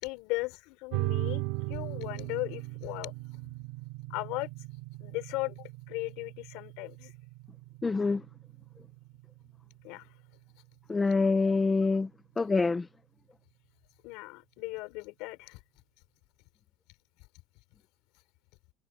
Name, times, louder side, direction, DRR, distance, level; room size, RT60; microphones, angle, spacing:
voice 1, 0.0-1.4 1.7-3.1 4.1-4.5 5.0-7.1 9.8-10.1 14.0-15.6, left 24 dB, 65° left, 5.4 m, -37 dB
sound 1, 0.9-11.9, right 21 dB, 80° right, 2.7 m, -39 dB
voice 2, 7.8-8.2 10.9-12.1 12.4-12.9, left 4 dB, 10° left, 0.6 m, -26 dB
cardioid pair, 180°, 0 cm